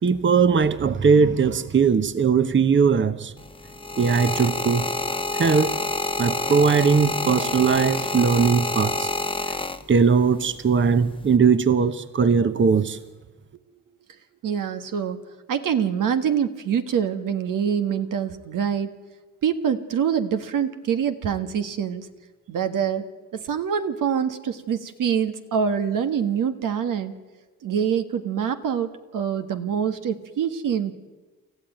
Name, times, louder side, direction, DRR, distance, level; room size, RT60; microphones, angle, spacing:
voice 1, 0.0-3.3 4.0-4.9 5.3-5.7 6.2-9.1 9.5-9.6 9.9-13.0, right 5 dB, 35° right, 1.0 m, -19 dB
sound 1, 3.4-10.2 11.0-11.4, left 2 dB, 15° left, 1.2 m, -28 dB
voice 2, 14.4-15.2 15.5-18.9 19.4-22.1 22.5-27.1 27.6-30.9, right 8 dB, 80° right, 1.7 m, -25 dB
28.5 x 14.5 x 9.2 m
cardioid pair, 80°, 32 cm